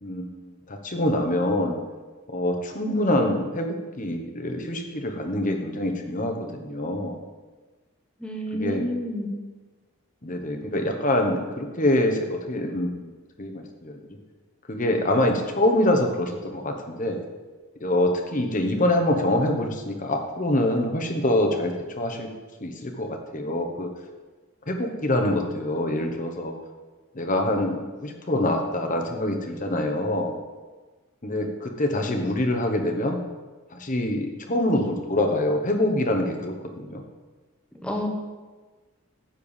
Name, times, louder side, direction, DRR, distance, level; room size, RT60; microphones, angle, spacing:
voice 1, 0.0-1.8 2.3-7.2 8.5-8.8 10.2-13.1 13.4-14.0 14.7-17.2 17.8-22.3 22.6-23.9 24.7-26.5 27.1-30.3 31.2-33.2 33.7-37.0, left 1 dB, 35° left, 3 dB, 1.1 m, -25 dB
voice 2, 8.2-9.3 37.8-38.1, equal, 5° left, 1 dB, 1.1 m, -29 dB
10.0 x 4.6 x 7.1 m, 1.3 s
head